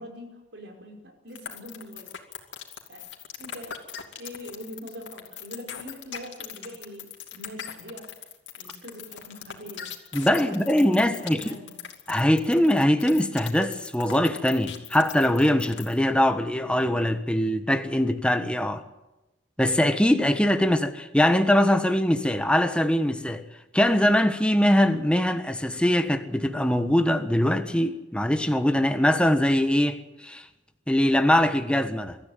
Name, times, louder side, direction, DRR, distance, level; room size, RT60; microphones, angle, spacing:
voice 1, 0.0-2.1 2.9-3.0 3.4-3.8 4.2-8.1 8.6-9.9 10.1-11.8, equal, 70° right, 5.2 m, -43 dB
sound 1, 1.3-16.0, left 9 dB, 85° left, 2.6 m, -39 dB
voice 2, 10.1-11.5 12.1-18.8 19.6-23.4 23.7-30.0 30.2-30.4 30.9-32.2, left 1 dB, 5° left, 1.4 m, -22 dB
23.5 x 14.0 x 9.3 m
head